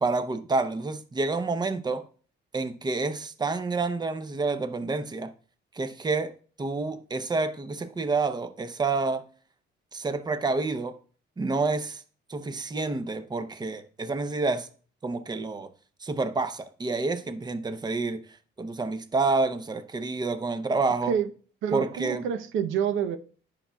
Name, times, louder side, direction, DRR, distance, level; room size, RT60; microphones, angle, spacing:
voice 1, 0.0-2.0 2.5-5.3 5.7-6.3 6.6-9.3 9.9-11.0 11.4-12.0 12.3-14.7 15.0-15.7 16.0-18.2 18.6-21.1 21.7-22.2, right 3 dB, 20° right, 0.7 m, -28 dB
voice 2, 21.6-23.2, right 8 dB, 85° right, 0.7 m, -27 dB
9.8 x 5.7 x 2.3 m
cardioid pair, 90°, 20 cm